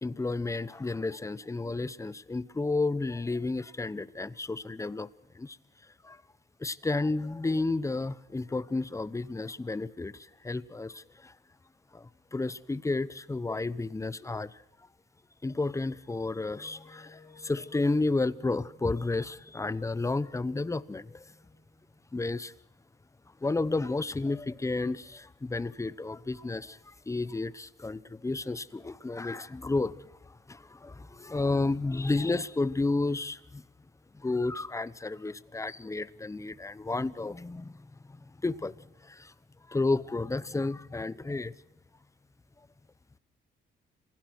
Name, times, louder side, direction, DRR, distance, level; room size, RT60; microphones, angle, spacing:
voice 1, 0.0-5.1 5.3-5.6 6.0-6.2 6.6-11.3 11.9-14.5 15.4-21.2 22.1-22.5 23.4-30.0 30.5-33.6 34.1-37.8 38.4-38.7 39.0-39.3 39.7-41.5, left 3 dB, 15° left, 0.9 m, -31 dB
Wind instrument woodwind instrument, 16.4-22.4, left 3 dB, 50° left, 6.0 m, -58 dB
27.0 x 16.5 x 6.2 m
cardioid pair, 90°, 20 cm